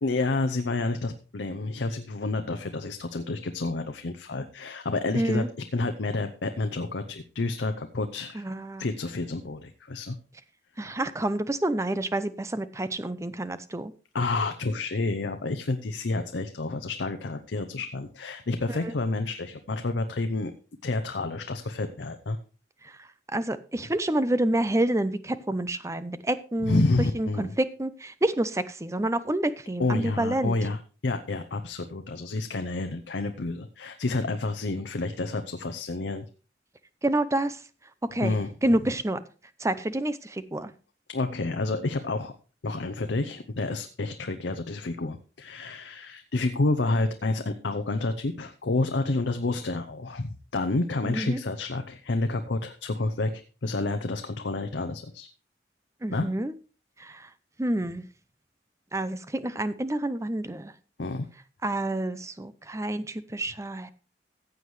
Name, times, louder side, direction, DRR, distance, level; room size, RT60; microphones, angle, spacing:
voice 1, 0.0-5.4 5.7-8.4 8.8-10.2 14.1-20.5 20.8-22.4 26.6-27.5 29.8-36.2 38.2-38.5 41.1-42.3 42.6-55.3 56.1-56.3 61.0-61.3, left 2 dB, 75° left, 8 dB, 0.7 m, -29 dB
voice 2, 5.1-5.5 8.3-8.9 10.8-13.9 18.7-18.9 22.8-22.9 23.3-26.8 27.1-30.5 37.0-37.6 38.1-38.4 38.6-39.2 39.6-40.7 51.0-51.4 56.0-56.5 57.0-57.3 57.6-58.1 58.9-60.7 61.6-63.9, right 1 dB, 15° right, 14 dB, 0.6 m, -28 dB
15.0 x 7.9 x 3.2 m, 0.35 s
head